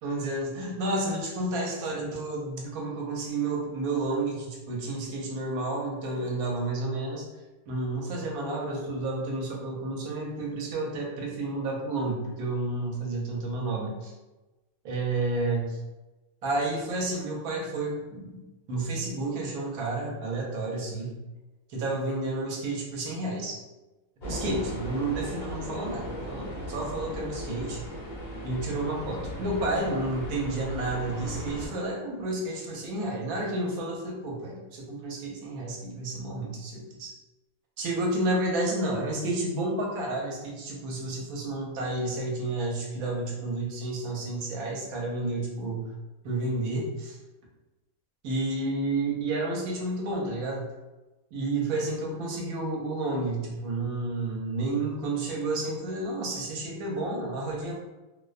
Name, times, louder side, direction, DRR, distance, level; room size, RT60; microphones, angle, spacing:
voice 1, 0.0-7.3 7.7-14.1 14.8-15.8 16.4-18.4 18.7-21.2 21.7-23.6 24.2-27.8 28.4-37.1 37.8-45.8 46.2-47.2 48.2-50.6 51.3-57.7, right 2 dB, 85° right, -1 dB, 1.1 m, -31 dB
sound 1, 24.2-31.7, equal, 45° left, 0.6 m, -37 dB
2.5 x 2.1 x 2.4 m, 1.1 s
omnidirectional pair, 1.5 m